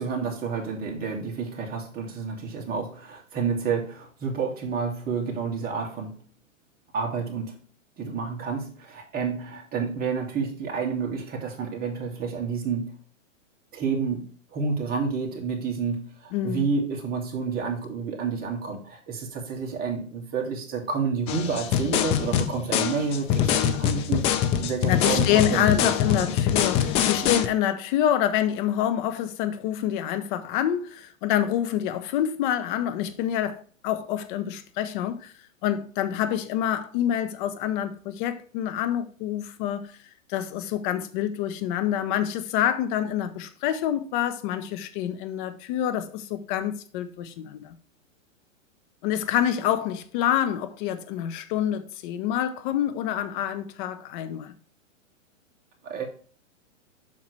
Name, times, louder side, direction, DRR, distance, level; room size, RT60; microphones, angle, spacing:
voice 1, 0.0-6.2 6.9-7.6 8.0-12.9 13.7-24.3 24.6-26.4 27.2-27.4 55.8-56.1, right 5 dB, 25° right, 2.3 m, -30 dB
voice 2, 16.3-16.7 24.8-35.3 35.6-39.9 40.3-47.7 49.0-54.5, left 11 dB, 40° left, 1.1 m, -27 dB
sound 1, 21.3-27.5, left 9 dB, 15° left, 0.4 m, -24 dB
7.6 x 5.7 x 3.4 m
hypercardioid pair, 130°, 39 cm